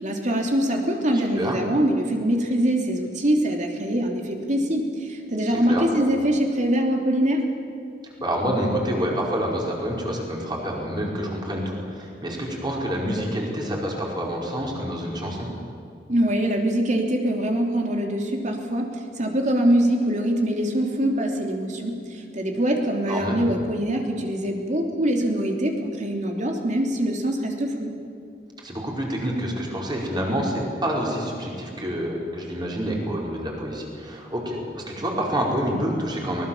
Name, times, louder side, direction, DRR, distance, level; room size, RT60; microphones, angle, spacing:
voice 1, 0.0-4.8 5.1-7.4 16.1-18.9 19.2-21.9 22.3-25.7 26.0-27.9, right 1 dB, 45° right, 2 dB, 3.1 m, -23 dB
voice 2, 1.1-1.6 5.5-5.9 8.2-15.5 23.1-23.5 28.6-36.4, equal, 25° right, -2 dB, 5.1 m, -27 dB
23.5 x 20.0 x 7.3 m, 2.5 s
head